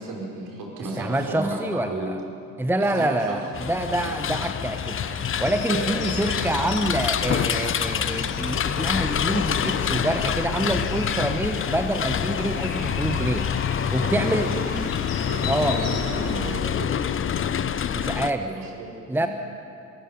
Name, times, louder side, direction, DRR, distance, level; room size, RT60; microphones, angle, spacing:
voice 1, 0.0-2.1 2.9-3.4 5.7-6.3 6.6-6.7 13.7-14.8 15.3-17.0 18.4-19.3, right 2 dB, 55° right, -1 dB, 5.4 m, -34 dB
voice 2, 1.0-2.2 2.6-13.5 13.9-14.5 15.5-15.8 17.9-18.5 19.1-19.3, right 1 dB, 5° right, 7 dB, 1.1 m, -26 dB
sound 1, 3.5-18.3, left 8 dB, 30° left, 0.9 m, -27 dB
sound 2, 4.6-16.0, left 5 dB, 50° left, 3.3 m, -38 dB
sound 3, 4.6-16.6, right 5 dB, 70° right, 2.0 m, -42 dB
23.5 x 21.5 x 5.3 m, 2.6 s
figure-of-eight pair, 55°, 41 cm